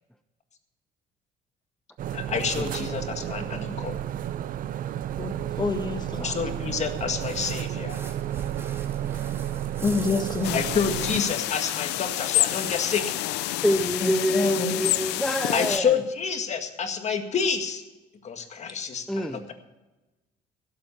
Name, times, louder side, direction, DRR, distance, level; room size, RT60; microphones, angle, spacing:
sound 1, 2.0-11.2, right 11 dB, 55° right, 0.7 m, -32 dB
voice 1, 2.1-4.0 6.2-8.0 10.5-13.2 15.5-17.8 18.2-19.5, left 6 dB, 40° left, 1.8 m, -28 dB
voice 2, 3.2-3.7 5.2-6.4 9.8-10.6 14.0-14.9, left 3 dB, 25° left, 1.7 m, -28 dB
sound 2, 7.9-13.3 13.6-14.3, right 2 dB, 15° right, 2.0 m, -45 dB
sound 3, 10.4-15.8, left 16 dB, 90° left, 0.5 m, -28 dB
voice 3, 13.6-15.9 19.1-19.4, equal, 5° left, 0.6 m, -26 dB
16.5 x 8.0 x 7.1 m
cardioid pair, 110°, 17 cm